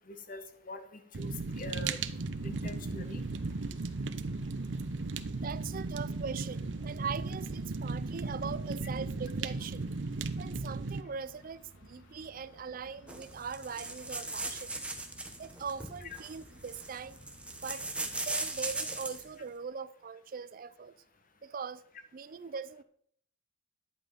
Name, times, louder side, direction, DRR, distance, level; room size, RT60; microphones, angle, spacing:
voice 1, 0.1-1.3 1.6-2.0 2.4-3.2, left 1 dB, 50° left, 1.3 m, -44 dB
Fire, 1.1-11.0, right 3 dB, 85° right, 0.7 m, -36 dB
sound 1, 1.5-18.9, left 1 dB, 85° left, 1.5 m, -57 dB
voice 2, 5.4-9.9 10.4-14.8 15.4-17.2 17.6-17.9 18.3-21.0 21.4-21.8 22.1-22.8, right 6 dB, 50° right, 0.4 m, -41 dB
sound 2, 13.1-19.3, right 2 dB, 5° right, 1.3 m, -39 dB
11.0 x 8.4 x 5.1 m
head